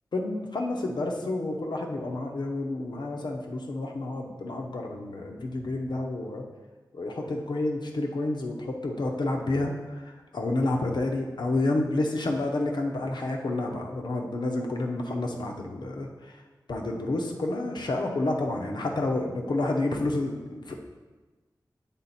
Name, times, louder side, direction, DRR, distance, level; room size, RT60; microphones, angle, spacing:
voice 1, 0.1-6.5 6.9-16.3 16.7-20.7, left 2 dB, 70° left, 2 dB, 0.8 m, -29 dB
7.4 x 3.7 x 4.1 m, 1.3 s
wide cardioid pair, 90°, 8 cm